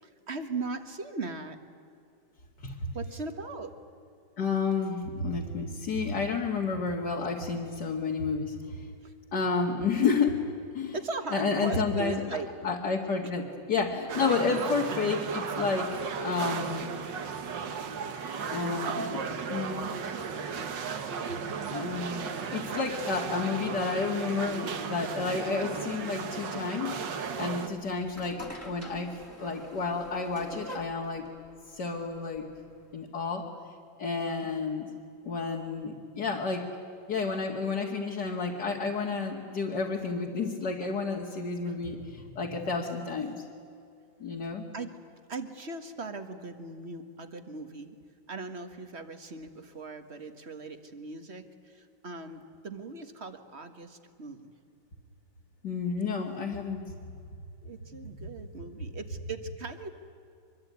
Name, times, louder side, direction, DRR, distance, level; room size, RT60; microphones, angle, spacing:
voice 1, 0.0-1.6 2.9-3.7 9.0-9.1 10.9-12.5 14.5-14.9 34.4-34.5 41.6-41.8 44.7-44.9 45.3-48.0 48.3-54.5 57.6-59.9, right 3 dB, 35° right, 8 dB, 1.7 m, -39 dB
voice 2, 4.4-8.9 9.3-10.4 10.7-11.0 11.3-16.9 18.5-19.9 21.7-31.3 31.7-32.5 32.9-33.5 34.0-34.9 35.2-36.7 37.1-43.3 44.2-44.6 55.6-56.8, left 4 dB, 60° left, -1 dB, 2.5 m, -31 dB
sound 1, 14.1-27.7, right 6 dB, 70° right, 2.1 m, -35 dB
sound 2, 27.7-32.9, equal, 5° right, 2.0 m, -47 dB
25.0 x 22.5 x 9.6 m, 2.5 s
omnidirectional pair, 2.1 m